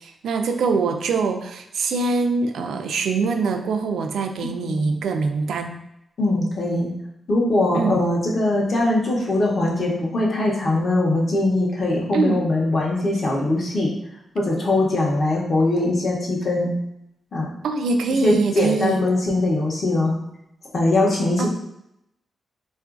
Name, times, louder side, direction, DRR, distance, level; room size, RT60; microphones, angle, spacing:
voice 1, 0.0-5.8 7.7-8.0 12.1-12.4 17.6-19.0 21.4-21.5, right 4 dB, 90° right, 6 dB, 0.3 m, -23 dB
voice 2, 4.6-5.0 6.2-6.9 7.3-13.9 14.3-16.7 17.3-17.5 18.2-20.2 20.7-21.5, left 2 dB, 40° left, -2 dB, 0.7 m, -21 dB
3.7 x 2.4 x 2.4 m, 0.81 s
wide cardioid pair, 180°, 0 cm